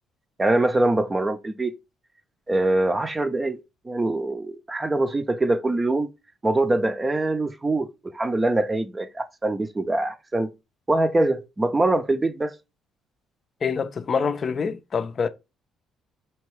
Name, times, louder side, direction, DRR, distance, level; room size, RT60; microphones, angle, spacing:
voice 1, 0.4-1.7 2.5-6.1 6.4-7.9 8.1-10.5 10.9-12.5, right 2 dB, 25° right, 0.6 m, -23 dB
voice 2, 13.6-15.3, left 5 dB, 45° left, 0.5 m, -25 dB
4.5 x 2.9 x 3.2 m
hypercardioid pair, 60°, 0 cm